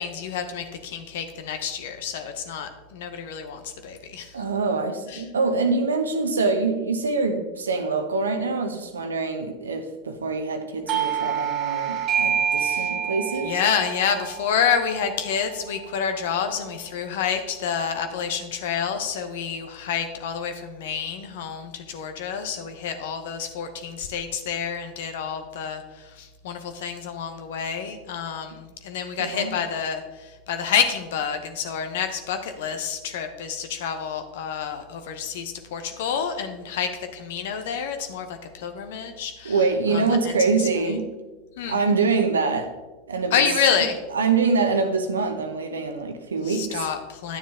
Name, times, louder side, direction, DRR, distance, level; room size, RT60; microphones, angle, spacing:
voice 1, 0.0-4.4 5.1-5.2 12.5-13.0 13.4-39.6 39.9-40.3 40.6-40.7 41.6-41.8 43.3-44.0 46.4-47.4, left 7 dB, 70° left, 0.8 m, -28 dB
voice 2, 4.3-13.6 29.2-29.6 39.4-41.1 41.7-42.7 43.1-43.4 44.1-46.9, right 4 dB, 90° right, 0.7 m, -25 dB
Doorbell, 10.9-16.2, right 8 dB, 45° right, 1.0 m, -28 dB
9.6 x 7.2 x 3.7 m
hypercardioid pair, 90°, 0 cm